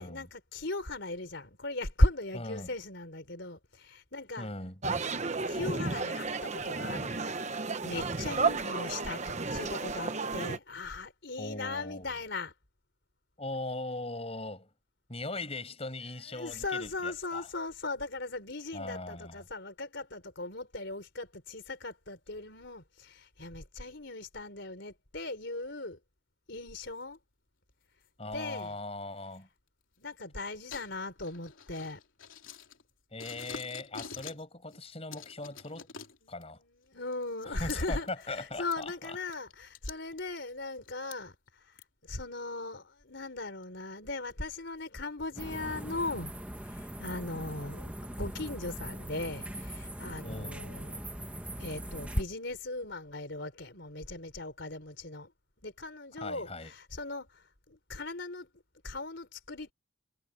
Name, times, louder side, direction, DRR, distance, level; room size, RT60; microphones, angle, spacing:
voice 1, 0.0-4.5 5.5-7.2 7.8-12.5 16.3-26.0 26.5-27.2 28.3-28.8 30.0-32.0 36.2-36.3 36.6-46.3 46.6-51.0 51.6-55.3 55.6-58.5 58.8-59.7, left 2 dB, 60° left, 4.4 m, -37 dB
voice 2, 2.3-2.7 4.4-4.8 11.4-12.2 13.4-14.7 15.1-17.5 18.7-19.4 28.2-29.5 33.1-35.9 36.3-36.6 37.5-38.9 50.2-50.7 56.2-56.7, left 2 dB, 30° left, 6.2 m, -40 dB
sound 1, 4.8-10.6, right 4 dB, 35° right, 1.0 m, -33 dB
sound 2, 27.0-27.2 28.0-28.6 29.3-29.4 30.7-32.9 33.2-34.5 34.7-36.5 37.1-38.3 38.6-41.2 41.8-41.9 42.4-42.5 43.6-43.7 44.3-44.4 44.8-44.9 45.4-45.5 45.9-46.4, left 6 dB, 75° left, 3.1 m, -47 dB
sound 3, 45.4-52.2, right 1 dB, 5° right, 1.2 m, -41 dB
head